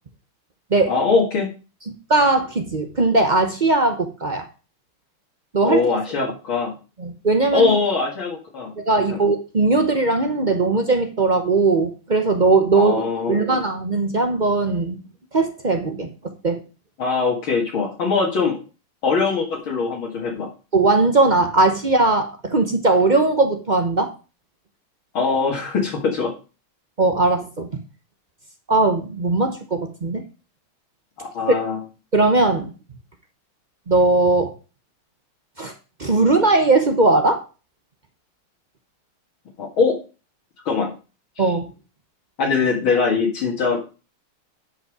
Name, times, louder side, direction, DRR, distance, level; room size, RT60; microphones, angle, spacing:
voice 1, 0.9-1.5 5.6-6.7 7.5-8.7 9.1-9.2 12.7-13.4 17.0-18.6 19.0-20.5 25.1-26.3 31.2-31.8 39.6-40.0 40.7-40.9 41.4-41.5 42.4-43.8, left 4 dB, 65° left, -2 dB, 2.6 m, -22 dB
voice 2, 2.1-4.4 5.5-5.8 7.0-7.7 8.9-13.0 13.3-14.9 15.3-16.6 20.7-24.1 27.0-27.7 28.7-30.2 32.1-32.7 33.9-34.5 35.6-35.7 36.0-37.4 41.4-41.7, right 3 dB, 55° right, 6 dB, 0.5 m, -19 dB
10.5 x 5.5 x 4.8 m, 0.33 s
omnidirectional pair, 2.4 m